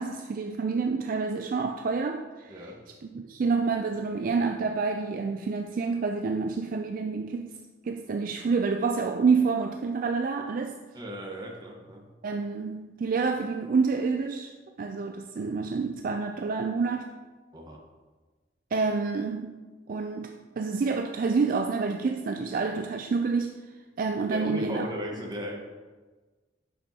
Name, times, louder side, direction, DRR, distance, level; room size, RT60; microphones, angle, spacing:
voice 1, 0.0-2.7 3.0-7.5 7.9-10.8 12.2-14.5 14.8-17.1 18.7-19.6 19.9-23.5 24.0-24.9, right 4 dB, 50° right, 5 dB, 0.4 m, -28 dB
voice 2, 10.9-12.1 17.5-17.8 24.3-25.6, equal, 25° right, -1 dB, 1.2 m, -36 dB
8.9 x 6.4 x 2.9 m, 1.3 s
head